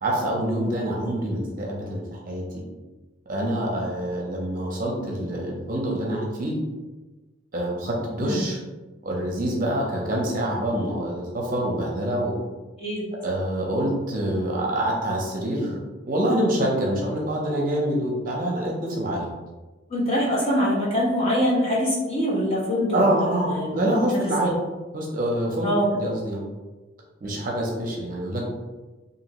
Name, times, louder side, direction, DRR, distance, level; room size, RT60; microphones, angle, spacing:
voice 1, 0.0-2.6 3.3-6.6 7.5-8.6 9.0-12.4 13.2-15.8 16.1-19.3 22.9-24.5 24.9-25.7 25.9-26.4 27.2-28.4, right 1 dB, 45° right, -2 dB, 0.6 m, -26 dB
voice 2, 19.9-23.9 24.2-24.5 25.6-25.9, equal, 30° left, -6 dB, 0.8 m, -24 dB
2.5 x 2.5 x 2.9 m, 1.2 s
head